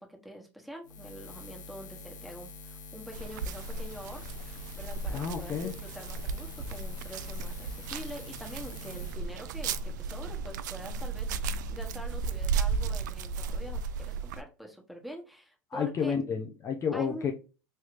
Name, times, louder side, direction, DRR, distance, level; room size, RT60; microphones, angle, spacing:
voice 1, 0.0-16.1 16.9-17.2, equal, ahead, 1.1 m, -45 dB
Buzz, 0.8-9.2, left 3 dB, 90° left, 0.6 m, -46 dB
sound 1, 3.1-14.4, right 4 dB, 80° right, 0.3 m, -35 dB
voice 2, 5.1-5.7 15.7-17.3, left 6 dB, 30° left, 0.6 m, -31 dB
3.2 x 3.0 x 2.5 m
hypercardioid pair, 95°, 10 cm